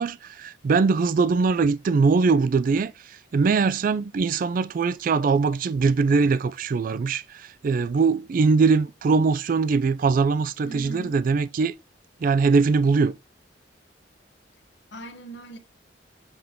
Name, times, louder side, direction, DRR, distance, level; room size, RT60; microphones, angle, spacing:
voice 1, 0.0-11.7 12.2-13.1, right 4 dB, 50° right, 0.3 m, -22 dB
voice 2, 10.6-11.2 14.9-15.6, right 1 dB, 65° left, 1.0 m, -39 dB
7.9 x 3.5 x 3.5 m
head